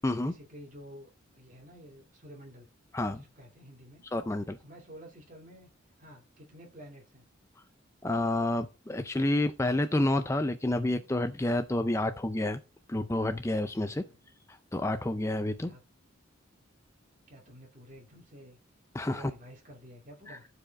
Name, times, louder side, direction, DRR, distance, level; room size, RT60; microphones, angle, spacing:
voice 1, 0.2-2.7 3.1-4.0 4.6-5.7 6.0-7.3 13.9-14.3 15.6-15.8 17.3-18.6 19.1-20.5, equal, 40° right, 2.5 m, -51 dB
voice 2, 2.9-3.2 4.1-4.6 8.0-12.6 12.9-14.0 14.5-15.7 18.9-19.3 20.3-20.4, left 1 dB, 15° left, 0.4 m, -29 dB
14.5 x 4.9 x 3.5 m
head